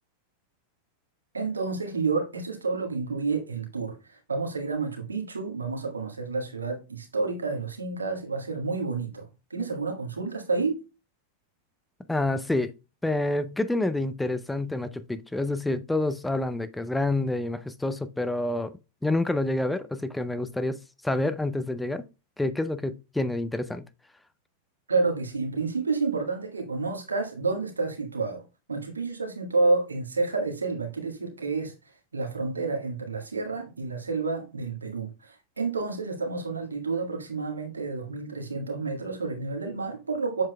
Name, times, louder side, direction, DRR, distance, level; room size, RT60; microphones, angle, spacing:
voice 1, 1.3-10.8 24.9-28.4 28.7-31.7 32.1-40.4, right 3 dB, 75° right, 1.7 m, -29 dB
voice 2, 12.1-12.7 13.0-18.7 19.0-22.0 22.4-23.8, left 2 dB, 5° left, 0.6 m, -28 dB
7.5 x 7.5 x 2.3 m
figure-of-eight pair, 90°, 0 cm